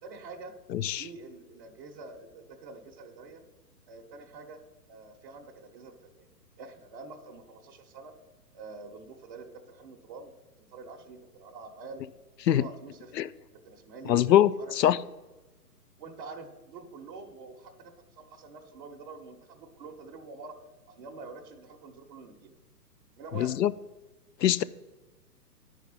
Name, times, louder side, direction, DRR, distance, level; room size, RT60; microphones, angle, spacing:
voice 1, 0.0-0.6 1.0-3.4 3.9-4.6 4.9-6.3 6.6-8.1 8.5-10.3 10.6-12.1 12.6-13.2 13.5-15.0 16.0-20.6 20.9-22.6 23.2-23.6, right 3 dB, 30° right, 0.9 m, -46 dB
voice 2, 0.7-1.0 12.5-12.6 13.2-13.3 14.1-15.0 23.3-23.7 24.4-24.6, left 11 dB, 75° left, 0.6 m, -23 dB
11.0 x 5.0 x 5.5 m
hypercardioid pair, 145°, 49 cm